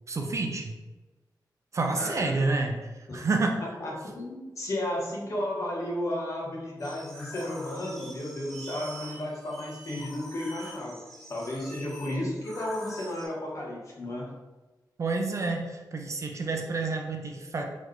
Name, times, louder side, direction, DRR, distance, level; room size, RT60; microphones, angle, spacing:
voice 1, 0.1-0.8 1.7-3.6 15.0-17.6, right 3 dB, 40° right, 3 dB, 0.4 m, -29 dB
voice 2, 1.9-2.4 3.1-3.2 3.8-11.0 11.3-14.3, left 1 dB, 45° left, -3 dB, 1.0 m, -33 dB
sound 1, 6.8-13.3, equal, 5° left, 0.8 m, -45 dB
3.8 x 3.1 x 3.3 m, 1.2 s
wide cardioid pair, 170°, 8 cm